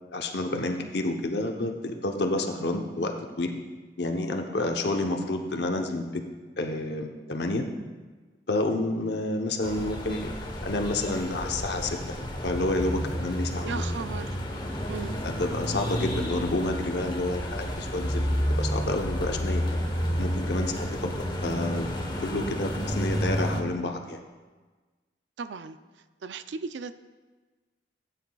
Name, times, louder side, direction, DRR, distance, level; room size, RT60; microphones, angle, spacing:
voice 1, 0.1-3.6 4.0-6.2 6.6-7.7 8.5-10.3 10.6-12.0 12.4-13.8 15.2-19.8 20.2-21.2 21.4-21.9 22.2-24.2, left 2 dB, 65° left, 3 dB, 0.9 m, -29 dB
sound 1, 9.6-23.6, equal, 25° left, 1.0 m, -30 dB
voice 2, 13.6-14.4 14.9-15.2 25.4-25.8 26.2-26.9, right 5 dB, 85° right, 11 dB, 0.4 m, -36 dB
16.5 x 9.2 x 2.3 m, 1.3 s
head